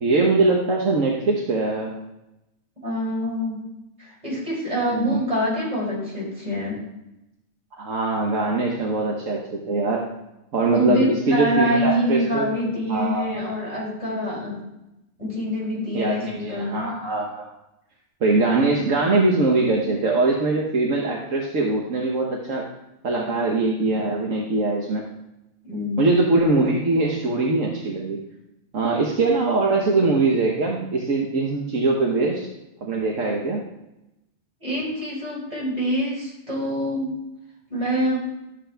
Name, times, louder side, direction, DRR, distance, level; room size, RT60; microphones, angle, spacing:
voice 1, 0.0-1.9 4.9-5.2 7.7-10.1 10.5-12.5 12.9-13.4 15.9-17.5 18.2-22.6 23.0-25.0 26.0-28.2 28.7-32.5 32.8-33.6, right 3 dB, 70° right, -1 dB, 1.4 m, -22 dB
voice 2, 2.8-3.6 4.0-6.8 10.7-14.6 15.2-16.9 25.6-26.0 34.6-37.1 37.7-38.3, equal, 30° right, -5 dB, 4.6 m, -25 dB
12.0 x 7.9 x 3.4 m, 0.91 s
omnidirectional pair, 1.4 m